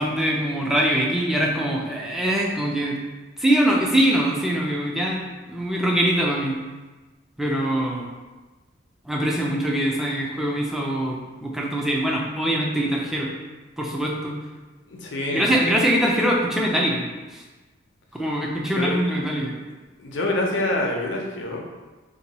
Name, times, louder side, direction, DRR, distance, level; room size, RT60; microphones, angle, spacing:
voice 1, 0.0-3.0 3.4-6.6 7.4-8.1 9.1-13.3 13.8-14.3 15.3-17.0 17.3-17.4 18.1-19.5, right 1 dB, ahead, -2 dB, 0.4 m, -23 dB
voice 2, 14.9-15.8 18.7-19.2 20.0-21.6, left 1 dB, 65° left, 0 dB, 0.6 m, -26 dB
2.7 x 2.2 x 4.0 m, 1.2 s
head